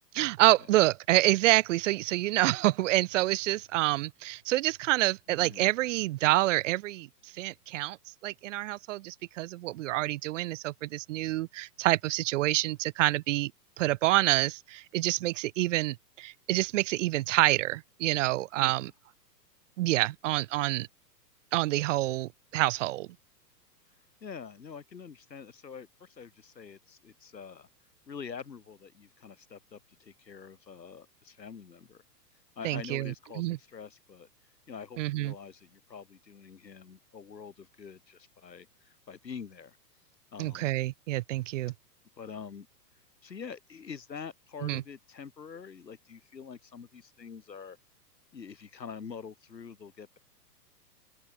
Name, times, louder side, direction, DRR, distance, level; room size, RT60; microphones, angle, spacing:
voice 1, 0.1-7.1 7.4-8.0 8.2-13.5 13.8-18.9 19.8-20.9 21.5-23.1 32.6-33.6 35.0-35.3 40.4-41.7 44.6-44.8, right 17 dB, 50° right, 1.2 m, -27 dB
voice 2, 5.3-5.7 18.6-18.8 24.2-27.7 28.1-32.0 32.6-34.3 34.7-39.8 40.3-40.7 42.2-42.7 43.2-47.8 48.3-50.2, left 6 dB, 80° left, 5.7 m, -45 dB
open air
hypercardioid pair, 110°, 50 cm